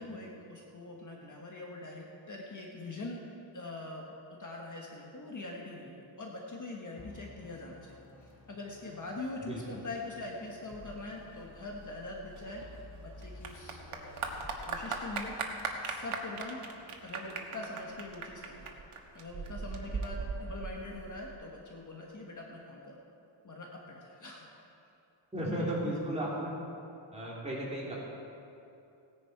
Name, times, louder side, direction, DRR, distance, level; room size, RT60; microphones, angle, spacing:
voice 1, 0.0-3.2 3.5-12.6 13.0-14.3 14.6-15.6 15.8-16.6 17.0-23.0 23.4-24.4 25.4-26.0, left 2 dB, 35° left, -1 dB, 1.4 m, -43 dB
sound 1, 7.0-17.8, left 3 dB, 65° left, 2.0 m, -54 dB
voice 2, 9.5-9.8 25.3-26.5 27.1-28.0, right 1 dB, 15° right, -6 dB, 2.9 m, -35 dB
Clapping / Applause, 12.4-21.3, right 4 dB, 80° right, 1.4 m, -39 dB
17.0 x 10.5 x 4.7 m, 2.8 s
wide cardioid pair, 155°, 49 cm